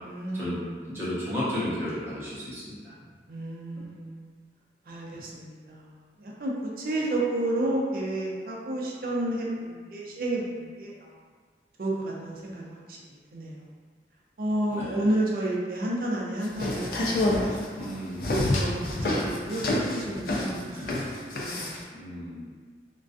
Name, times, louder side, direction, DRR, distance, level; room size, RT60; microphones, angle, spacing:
voice 1, 0.0-0.8 3.3-4.3 4.9-5.9 6.2-10.9 11.8-13.0 13.3-13.6 14.4-17.9 18.5-20.6 20.9-21.1 21.4-21.7, right 1 dB, 55° right, -3 dB, 0.4 m, -31 dB
voice 2, 0.9-2.9 3.8-3.9 14.7-15.1 17.8-18.3 19.0-19.4 20.6-21.0 21.9-22.5, left 1 dB, 15° right, -11 dB, 0.6 m, -34 dB
sound 1, 16.4-21.8, left 1 dB, 55° left, 0.3 m, -28 dB
2.4 x 2.2 x 2.5 m, 1.5 s
head